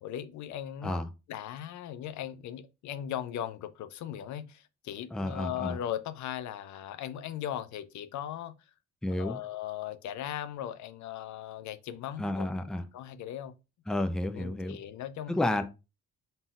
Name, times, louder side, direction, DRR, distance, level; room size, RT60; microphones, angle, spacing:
voice 1, 0.0-1.0 1.3-8.6 9.2-12.5 12.9-13.5 14.3-15.4, left 11 dB, 70° left, 0.5 m, -38 dB
voice 2, 5.1-5.8 9.0-9.4 12.2-12.9 13.9-14.8 15.3-15.6, left 1 dB, ahead, 0.4 m, -31 dB
3.9 x 3.8 x 2.4 m
cardioid pair, 90°, 30 cm